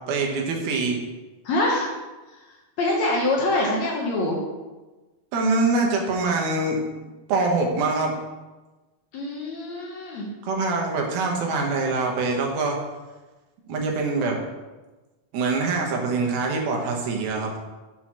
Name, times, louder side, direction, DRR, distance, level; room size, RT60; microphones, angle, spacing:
voice 1, 0.1-1.0 5.3-6.8 7.3-8.1 10.4-12.8 13.7-14.4 15.3-17.5, right 3 dB, 90° right, 0 dB, 3.0 m, -24 dB
voice 2, 1.5-1.9 2.8-4.4 9.1-10.3, left 2 dB, 65° left, -2 dB, 1.9 m, -24 dB
7.5 x 4.4 x 6.1 m, 1.2 s
omnidirectional pair, 4.2 m